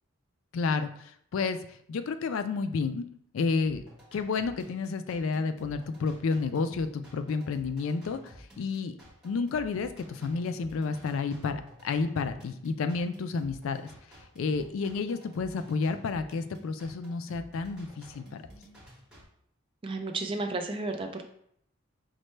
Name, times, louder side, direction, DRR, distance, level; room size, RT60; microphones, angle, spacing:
voice 1, 0.5-0.9 1.3-3.0 3.3-3.8 4.1-8.9 9.2-13.8 14.4-18.4, left 4 dB, 70° left, 9 dB, 0.3 m, -30 dB
sound 1, 3.6-19.2, equal, 5° right, 1.1 m, -52 dB
voice 2, 19.8-21.2, right 2 dB, 25° right, 5 dB, 0.3 m, -32 dB
5.2 x 2.1 x 3.1 m, 0.68 s
head